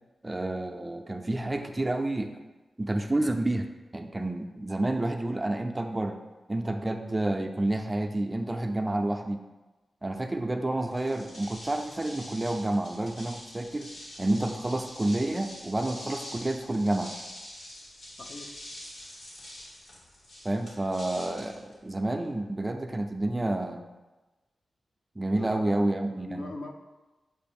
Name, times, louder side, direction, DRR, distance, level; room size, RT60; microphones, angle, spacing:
voice 1, 0.2-2.3 2.8-3.7 3.9-6.2 6.5-9.4 10.0-13.9 14.2-17.1 20.4-23.9 25.2-26.5, right 1 dB, 20° right, 5 dB, 0.4 m, -29 dB
sound 1, 10.9-22.3, left 1 dB, 85° left, 2.1 m, -45 dB
voice 2, 18.2-18.6 25.2-26.7, left 2 dB, 60° left, 3 dB, 0.7 m, -42 dB
7.5 x 2.6 x 5.2 m, 1.1 s
wide cardioid pair, 95°, 0 cm